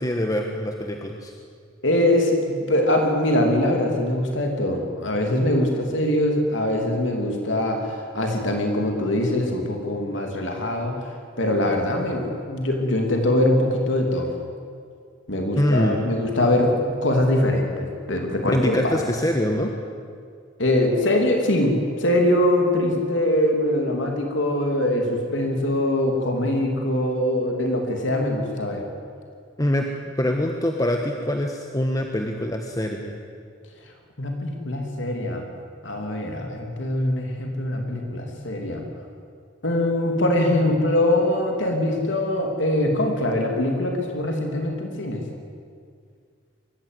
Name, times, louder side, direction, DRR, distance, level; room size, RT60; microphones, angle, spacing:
voice 1, 0.0-1.3 15.6-16.1 18.4-19.7 29.6-29.9 30.2-33.2, left 1 dB, 20° left, 3 dB, 1.3 m, -24 dB
voice 2, 1.8-11.0 11.4-14.3 15.3-19.0 20.6-28.8 34.2-35.5 35.8-38.8 39.6-45.2, left 1 dB, 75° left, 2 dB, 3.0 m, -23 dB
23.5 x 14.5 x 9.6 m, 2.2 s
head